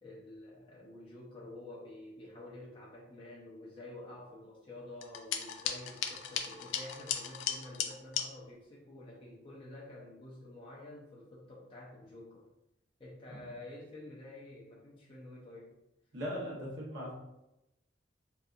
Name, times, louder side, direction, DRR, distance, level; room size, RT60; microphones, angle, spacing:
voice 1, 0.0-12.5 13.0-15.8, left 1 dB, 30° left, -5 dB, 0.4 m, -49 dB
sound 1, 5.0-8.3, left 8 dB, 90° left, 0.3 m, -36 dB
voice 2, 16.1-17.1, equal, 85° right, -5 dB, 0.9 m, -39 dB
2.7 x 2.3 x 2.4 m, 0.90 s
head